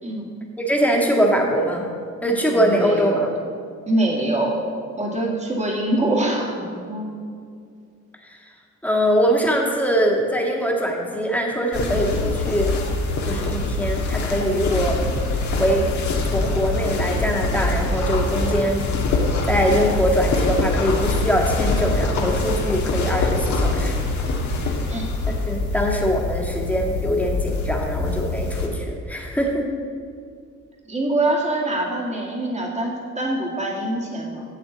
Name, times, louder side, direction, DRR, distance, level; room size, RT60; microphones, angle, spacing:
voice 1, 0.0-0.3 2.5-3.2 3.9-4.7 5.0-7.1 24.9-25.1 30.9-34.4, right 1 dB, 20° right, -1 dB, 2.0 m, -24 dB
voice 2, 0.6-1.9 2.2-3.3 8.2-8.5 8.8-12.7 13.2-15.0 15.6-18.8 19.4-24.0 25.3-29.7, equal, 5° left, -1 dB, 1.8 m, -22 dB
sound 1, 11.7-28.7, left 2 dB, 70° left, 1.5 m, -24 dB
11.5 x 7.7 x 4.0 m, 2.3 s
cardioid pair, 90°, 30 cm